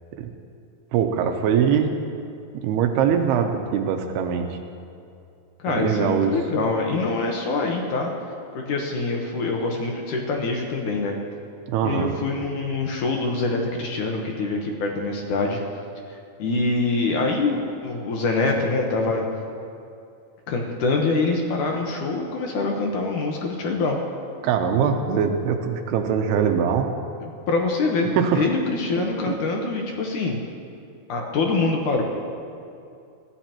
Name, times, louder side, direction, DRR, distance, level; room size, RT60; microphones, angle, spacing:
voice 1, 0.9-1.9 2.5-4.5 5.7-6.3 11.7-12.1 24.4-26.9 28.1-28.5 29.0-29.3, right 7 dB, 90° right, 4 dB, 2.8 m, -22 dB
voice 2, 5.6-8.1 8.5-11.2 11.8-15.6 16.4-19.3 20.5-24.0 27.2-30.4 31.1-32.0, left 3 dB, 65° left, 1 dB, 2.2 m, -25 dB
23.5 x 14.0 x 3.0 m, 2.5 s
omnidirectional pair, 4.5 m